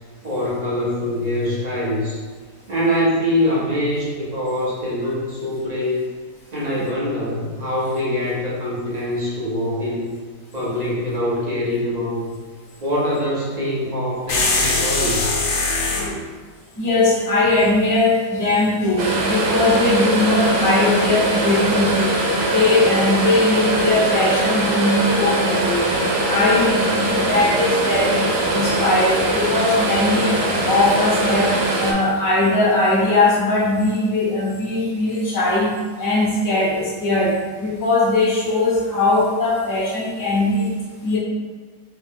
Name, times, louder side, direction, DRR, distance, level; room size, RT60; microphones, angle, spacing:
voice 1, 0.2-2.2 2.7-6.1 6.5-10.1 10.5-12.3 12.8-15.3, left 1 dB, 45° right, -6 dB, 0.5 m, -23 dB
sound 1, 14.3-16.1, left 3 dB, 80° left, 1.2 m, -21 dB
voice 2, 16.8-22.1 22.4-25.8 26.3-30.4 30.6-31.5 31.8-35.7 36.0-40.7 41.0-41.2, left 2 dB, 25° left, -7 dB, 0.4 m, -19 dB
sound 2, 19.0-31.9, right 1 dB, 80° right, 1.2 m, -21 dB
3.1 x 3.1 x 3.5 m, 1.4 s
omnidirectional pair, 1.8 m